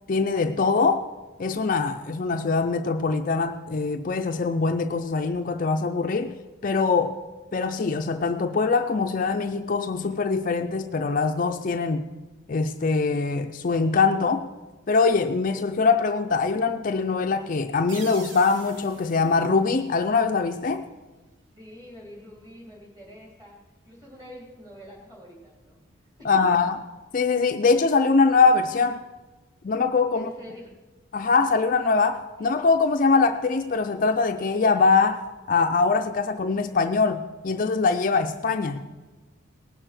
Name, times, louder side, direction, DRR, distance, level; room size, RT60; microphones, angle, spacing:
voice 1, 0.1-1.1 1.4-6.3 6.6-7.2 7.5-12.0 12.5-14.5 14.9-20.9 26.2-26.8 27.1-29.0 29.6-30.3 31.1-38.8, left 4 dB, 40° left, 6 dB, 0.4 m, -23 dB
sound 1, 17.9-20.5, right 5 dB, 70° right, 1.2 m, -45 dB
voice 2, 21.5-25.8 26.2-26.5 30.1-30.7, equal, 20° right, -2 dB, 3.2 m, -45 dB
18.5 x 6.7 x 5.9 m, 1.3 s
head